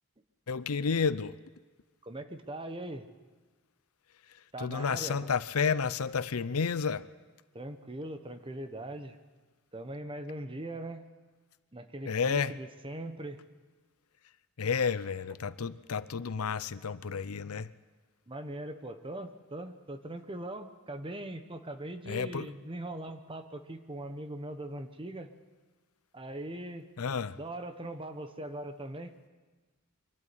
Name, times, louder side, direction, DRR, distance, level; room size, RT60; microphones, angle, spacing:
voice 1, 0.5-1.4 4.3-7.1 12.0-12.6 14.6-17.7 22.1-22.5 27.0-27.4, left 5 dB, 85° left, 0.6 m, -31 dB
voice 2, 2.0-3.1 4.5-5.2 7.5-9.2 9.7-11.0 11.7-13.4 18.3-25.3 26.1-26.9 27.4-29.1, right 1 dB, 25° right, 1.1 m, -40 dB
24.5 x 12.5 x 9.8 m
head